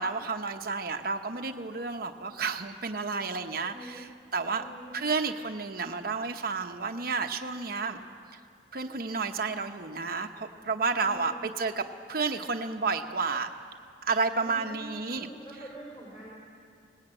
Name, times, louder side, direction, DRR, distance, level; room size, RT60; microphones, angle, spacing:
voice 1, 0.0-4.6 4.9-8.0 8.7-13.5 14.0-15.3, right 4 dB, 55° right, 4 dB, 1.0 m, -31 dB
voice 2, 3.6-4.1 4.5-5.0 7.8-8.0 11.0-11.5 14.4-16.3, right 1 dB, 35° left, -5 dB, 5.5 m, -46 dB
23.5 x 19.5 x 9.0 m, 2.4 s
head